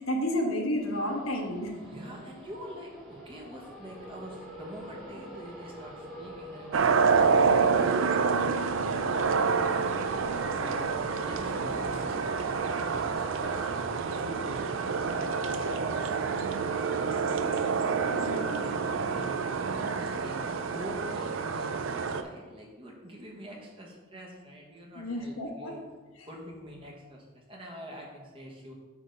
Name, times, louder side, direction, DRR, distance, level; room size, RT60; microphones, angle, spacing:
voice 1, 0.0-1.7 18.1-18.7 24.9-25.7, equal, 90° left, 1 dB, 1.3 m, -31 dB
sound 1, 0.7-17.0, equal, ahead, 1.6 m, -46 dB
voice 2, 1.8-6.9 7.2-8.0 8.9-9.5 10.6-17.6 18.2-25.8 26.3-28.7, equal, 25° right, -1 dB, 1.2 m, -46 dB
sound 2, 6.7-22.2, right 5 dB, 70° right, 0.4 m, -28 dB
sound 3, 8.0-16.5 16.8-17.1 17.4-17.5 18.0-18.1 18.6-18.7, right 2 dB, 55° right, 2.3 m, -48 dB
8.4 x 3.5 x 5.3 m, 1.3 s
head